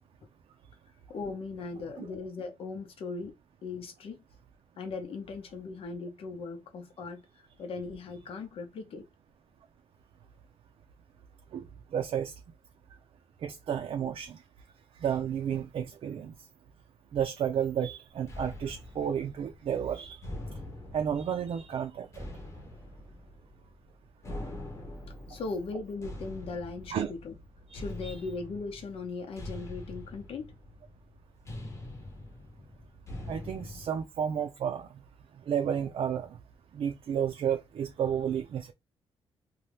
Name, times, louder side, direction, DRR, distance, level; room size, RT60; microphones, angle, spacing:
voice 1, 1.1-4.2 4.8-9.1 25.3-27.3 27.7-30.5, left 4 dB, 60° left, 0.8 m, -39 dB
voice 2, 11.9-12.3 13.4-14.4 15.0-16.3 17.1-20.2 20.9-22.2 26.9-27.1 28.0-28.1 33.3-34.9 35.5-36.4 36.7-38.7, right 8 dB, 60° right, 0.5 m, -31 dB
sound 1, 18.3-33.9, left 1 dB, 25° left, 0.9 m, -44 dB
2.8 x 2.3 x 3.4 m
wide cardioid pair, 150°, 11 cm